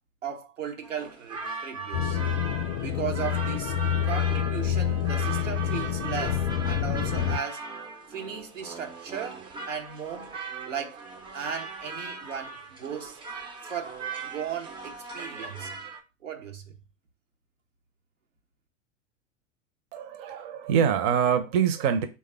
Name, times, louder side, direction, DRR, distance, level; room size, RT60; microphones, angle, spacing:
voice 1, 0.2-2.2 2.8-3.7 4.0-7.7 8.1-10.3 10.7-11.0 11.3-13.2 13.6-14.0 14.3-15.8 16.2-16.7, right 7 dB, 90° right, 0.7 m, -36 dB
sound 1, 0.8-16.0, right 4 dB, 15° right, 0.3 m, -39 dB
sound 2, 1.9-7.4, left 9 dB, 45° left, 0.5 m, -27 dB
voice 2, 19.9-22.1, right 8 dB, 50° right, 0.6 m, -24 dB
3.4 x 2.2 x 3.2 m
hypercardioid pair, 90°, 37 cm